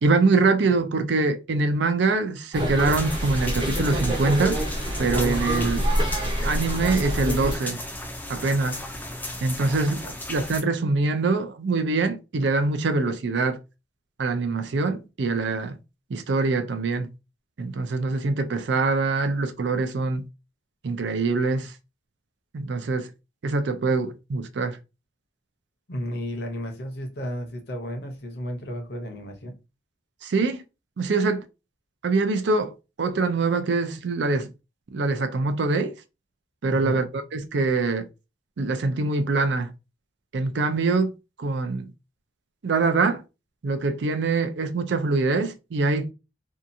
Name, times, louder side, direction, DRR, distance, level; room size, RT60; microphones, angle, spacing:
voice 1, 0.0-4.6 5.0-5.9 6.4-7.8 8.3-8.8 9.4-13.6 14.2-15.8 16.1-17.1 17.6-20.2 20.8-21.7 22.5-23.1 23.4-24.8 30.2-30.6 31.0-31.5 32.0-32.7 33.0-34.5 34.9-36.0 36.6-38.1 38.6-39.7 40.3-41.1 41.4-41.9 42.6-43.2 43.6-46.1, right 3 dB, 65° right, 0.4 m, -24 dB
sound 1, 2.5-7.6, equal, 25° right, 0.7 m, -26 dB
sound 2, 2.8-10.6, left 1 dB, 10° left, 0.4 m, -35 dB
voice 2, 25.9-29.5 36.7-37.0, equal, 55° left, 0.8 m, -33 dB
2.7 x 2.3 x 2.6 m
head